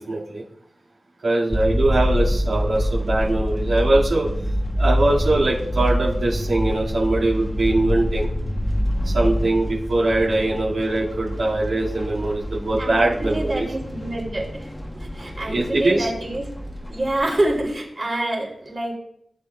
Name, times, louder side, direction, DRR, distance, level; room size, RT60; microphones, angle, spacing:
voice 1, 0.1-0.4 1.2-4.3 4.8-8.3 9.0-13.6 15.4-16.1, right 2 dB, 85° right, -7 dB, 2.2 m, -22 dB
sound 1, 1.5-17.7, equal, 15° left, 0.9 m, -26 dB
voice 2, 12.8-16.5 16.9-19.0, right 1 dB, 35° right, -3 dB, 3.0 m, -27 dB
14.5 x 8.2 x 2.4 m, 0.72 s
wide cardioid pair, 95°, 0 cm